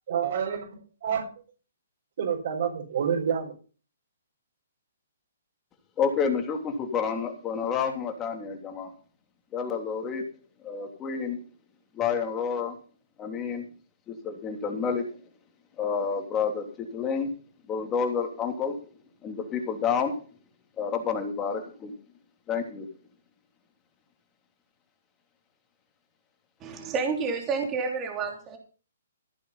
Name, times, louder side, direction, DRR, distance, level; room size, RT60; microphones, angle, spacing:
voice 1, 0.1-1.3 2.2-3.5, right 8 dB, 60° right, -2 dB, 5.5 m, -28 dB
voice 2, 6.0-8.9 9.5-10.2 10.6-11.4 12.0-12.7 13.2-13.6 14.1-15.0 15.8-16.7 16.9-17.3 17.7-18.8 19.2-20.1 20.8-21.9 22.5-22.9, left 6 dB, 20° left, 4 dB, 3.3 m, -29 dB
voice 3, 26.6-28.6, right 5 dB, 20° right, 2 dB, 3.4 m, -29 dB
15.5 x 8.5 x 5.7 m, 0.37 s
hypercardioid pair, 150°, 0 cm